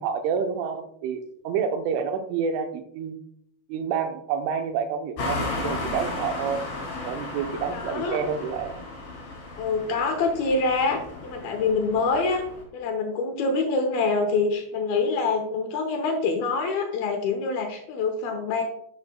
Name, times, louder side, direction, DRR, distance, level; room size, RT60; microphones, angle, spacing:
voice 1, 0.0-3.2 3.7-6.6 7.0-8.8, right 6 dB, 90° right, 6 dB, 3.3 m, -28 dB
sound 1, 5.2-12.6, left 2 dB, 60° left, 4.4 m, -34 dB
voice 2, 7.7-8.2 9.6-12.4 12.7-18.6, left 4 dB, 80° left, 4 dB, 2.2 m, -25 dB
10.5 x 8.0 x 2.2 m, 0.71 s
omnidirectional pair, 5.4 m